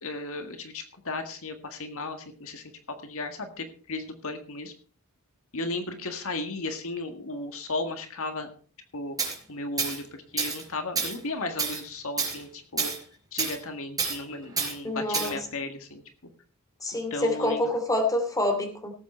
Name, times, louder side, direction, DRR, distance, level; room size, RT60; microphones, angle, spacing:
voice 1, 0.0-2.7 3.0-4.7 5.5-8.5 8.9-9.2 9.5-12.9 13.3-16.0 17.1-17.6, left 2 dB, 65° left, 6 dB, 1.8 m, -35 dB
Tools, 9.2-9.3 9.8-10.0 10.4-10.6 10.9-11.2 11.6-11.8 12.2-12.4 12.8-13.0 13.4-13.6 14.0-14.2 14.6-14.7 15.1-15.3, right 5 dB, 15° right, 4.7 m, -28 dB
voice 2, 14.8-15.4 16.8-18.9, left 1 dB, 15° left, 5 dB, 2.6 m, -27 dB
18.0 x 8.4 x 4.4 m, 0.39 s
head